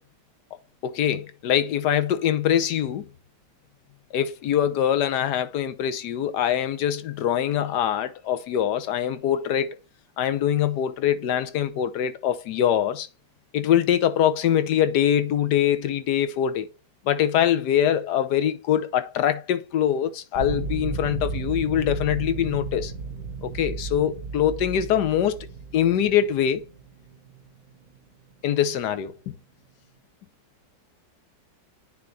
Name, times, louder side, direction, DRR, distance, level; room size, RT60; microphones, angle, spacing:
voice 1, 0.8-3.1 4.1-9.7 10.2-13.1 13.5-16.7 17.0-22.9 23.4-25.4 25.7-26.6 28.4-29.3, left 10 dB, 75° left, 1.3 m, -23 dB
sound 1, 20.3-28.0, right 5 dB, 60° right, 1.4 m, -34 dB
9.5 x 3.8 x 3.2 m
omnidirectional pair, 1.9 m